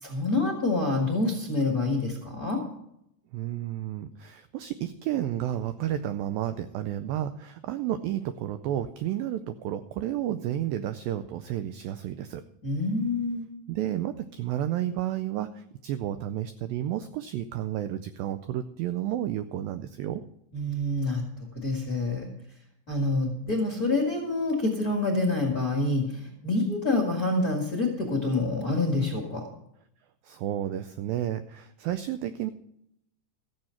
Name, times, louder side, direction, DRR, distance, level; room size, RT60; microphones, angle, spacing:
voice 1, 0.0-2.6 12.6-13.5 20.5-21.2 21.5-22.3 22.9-29.4, left 2 dB, 40° left, 0 dB, 1.3 m, -27 dB
voice 2, 3.3-12.4 13.7-20.2 30.2-32.5, right 12 dB, 90° right, 11 dB, 2.0 m, -31 dB
14.0 x 7.8 x 5.6 m, 0.77 s
omnidirectional pair, 4.7 m